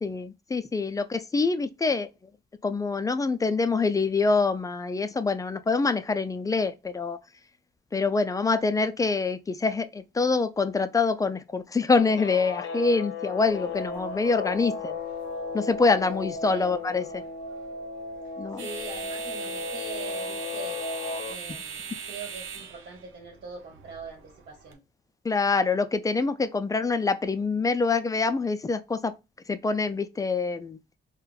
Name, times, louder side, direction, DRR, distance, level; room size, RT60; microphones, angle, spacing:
voice 1, 0.0-2.1 2.6-7.2 7.9-15.0 15.5-17.2 18.4-18.7 25.2-29.1 29.5-30.8, left 4 dB, 15° left, 0.3 m, -25 dB
Guitar, 11.9-21.3, left 4 dB, 60° left, 0.6 m, -35 dB
sound 1, 13.4-24.7, right 6 dB, 80° right, 0.7 m, -42 dB
voice 2, 18.6-20.8 21.3-24.8, right 5 dB, 55° right, 1.2 m, -42 dB
3.8 x 2.2 x 2.4 m
cardioid pair, 90°, 20 cm